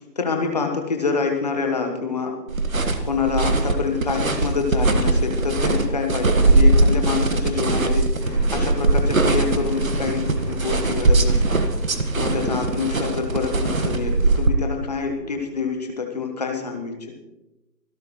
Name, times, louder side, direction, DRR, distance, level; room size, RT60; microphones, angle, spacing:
voice 1, 0.2-2.4 3.0-11.6 12.2-17.1, left 5 dB, 25° left, 4 dB, 1.3 m, -26 dB
sound 1, 2.5-14.5, right 2 dB, 55° right, 1.6 m, -21 dB
sound 2, 8.2-15.7, right 1 dB, 85° right, 3.1 m, -34 dB
25.0 x 12.0 x 3.1 m, 0.97 s
figure-of-eight pair, 150°, 50 cm